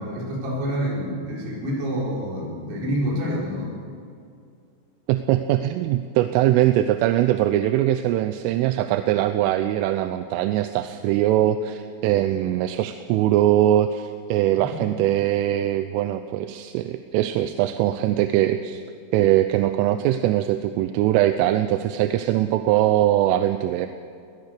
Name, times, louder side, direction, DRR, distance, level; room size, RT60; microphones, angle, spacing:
voice 1, 0.0-3.8 14.6-15.0, equal, 65° right, -4 dB, 7.1 m, -28 dB
voice 2, 5.1-18.8 19.1-23.9, right 13 dB, 85° right, 9 dB, 3.3 m, -21 dB
21.5 x 20.0 x 6.7 m, 2.3 s
omnidirectional pair, 5.7 m